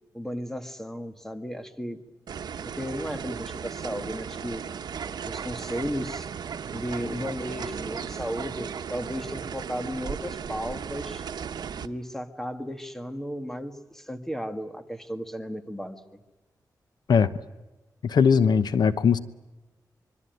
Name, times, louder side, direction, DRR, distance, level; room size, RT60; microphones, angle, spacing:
voice 1, 0.1-2.0 2.8-4.6 5.2-6.3 6.7-11.2 11.8-16.2, equal, 5° left, 1.9 m, -34 dB
sound 1, 2.3-11.9, right 7 dB, 90° right, 1.0 m, -36 dB
sound 2, 4.9-9.2, right 6 dB, 75° right, 1.8 m, -42 dB
voice 2, 18.0-19.2, left 6 dB, 80° left, 1.0 m, -20 dB
25.5 x 23.5 x 9.4 m
wide cardioid pair, 130°, 7 cm